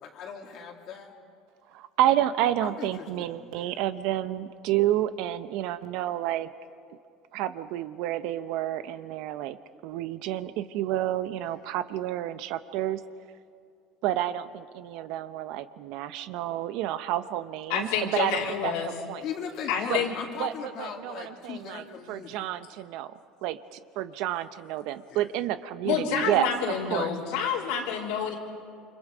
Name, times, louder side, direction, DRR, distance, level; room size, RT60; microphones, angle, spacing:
voice 1, 0.0-1.1 2.6-3.8 11.4-11.6 19.2-22.6 25.1-25.3, left 7 dB, 55° left, 0 dB, 2.3 m, -39 dB
voice 2, 1.7-6.5 7.3-9.6 9.8-13.0 14.0-18.7 19.1-19.2 19.9-20.0 20.4-23.1 23.4-27.1, right 12 dB, 70° right, 12 dB, 0.8 m, -30 dB
voice 3, 17.7-18.9 19.7-20.1 25.8-28.4, left 7 dB, 85° left, -4 dB, 3.7 m, -28 dB
28.5 x 25.5 x 5.1 m, 2.4 s
cardioid pair, 140°, 0 cm